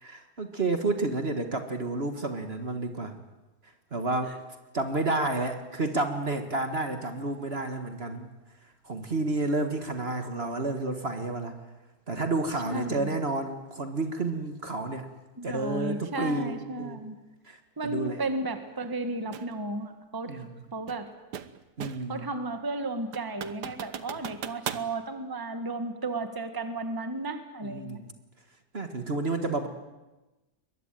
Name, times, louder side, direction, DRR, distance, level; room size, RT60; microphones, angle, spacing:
voice 1, 0.0-3.2 3.9-4.4 4.7-8.3 8.8-11.6 12.1-15.1 15.4-17.0 17.5-18.2 20.3-20.5 21.8-22.3 27.6-28.1 28.7-29.7, right 2 dB, 40° right, 7 dB, 1.9 m, -30 dB
voice 2, 12.7-13.2 15.4-17.2 17.8-21.1 22.1-28.0, right 2 dB, 15° right, 7 dB, 1.6 m, -34 dB
sound 1, 19.3-19.5 20.9-22.2 22.6-22.7 23.1-24.9, right 8 dB, 85° right, 1.7 m, -38 dB
22.5 x 22.0 x 9.2 m, 1.1 s
omnidirectional pair, 1.7 m